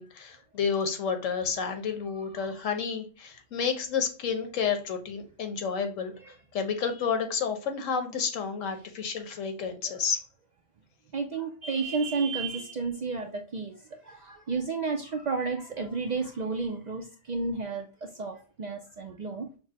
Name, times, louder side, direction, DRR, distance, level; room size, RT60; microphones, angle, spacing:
voice 1, 0.0-6.1 6.5-10.2, left 6 dB, 85° left, 6 dB, 1.2 m, -30 dB
voice 2, 11.1-19.5, right 4 dB, 60° right, 3 dB, 0.4 m, -32 dB
5.9 x 2.1 x 2.7 m, 0.36 s
omnidirectional pair, 1.3 m